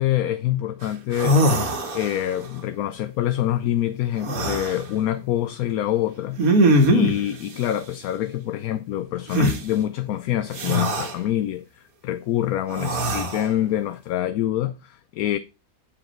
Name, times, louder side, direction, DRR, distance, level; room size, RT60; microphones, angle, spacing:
voice 1, 0.0-1.4 1.9-6.4 6.9-11.6 12.0-15.4, left 12 dB, 70° left, 1.0 m, -25 dB
sound 1, 0.8-0.9 1.1-2.4 4.2-4.8 6.4-7.2 9.3-9.6 10.5-11.1 12.7-13.5, right 1 dB, 60° right, 1.7 m, -21 dB
8.7 x 5.0 x 4.4 m
omnidirectional pair, 1.7 m